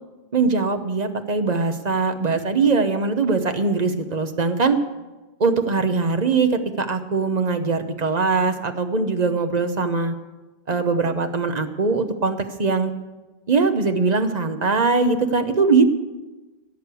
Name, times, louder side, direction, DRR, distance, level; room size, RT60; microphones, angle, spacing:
voice 1, 0.3-4.8 5.4-6.5 6.8-10.1 10.7-12.9 13.5-15.8, right 4 dB, 35° right, 7 dB, 1.0 m, -21 dB
16.5 x 6.5 x 8.4 m, 1.1 s
omnidirectional pair, 1.3 m